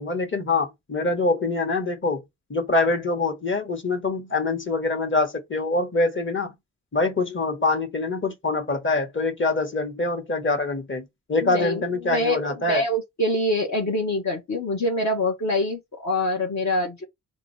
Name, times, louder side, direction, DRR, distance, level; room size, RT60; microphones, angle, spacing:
voice 1, 0.0-2.2 2.5-6.5 6.9-12.8, left 3 dB, 35° left, 1.3 m, -24 dB
voice 2, 11.4-12.4 12.7-17.0, left 1 dB, 55° left, 1.1 m, -25 dB
3.7 x 2.8 x 3.2 m
cardioid pair, 45°, 33 cm